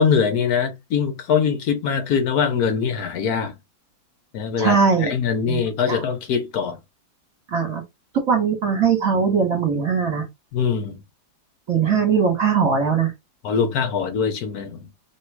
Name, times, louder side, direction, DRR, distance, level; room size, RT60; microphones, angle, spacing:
voice 1, 0.0-3.5 4.3-6.8 10.5-11.0 13.4-14.8, left 6 dB, 60° left, 1.2 m, -22 dB
voice 2, 4.6-5.1 5.5-5.6 5.9-6.0 7.5-7.8 8.3-10.2 11.7-13.1, right 6 dB, 50° right, 1.4 m, -20 dB
3.1 x 3.0 x 4.6 m
omnidirectional pair, 2.1 m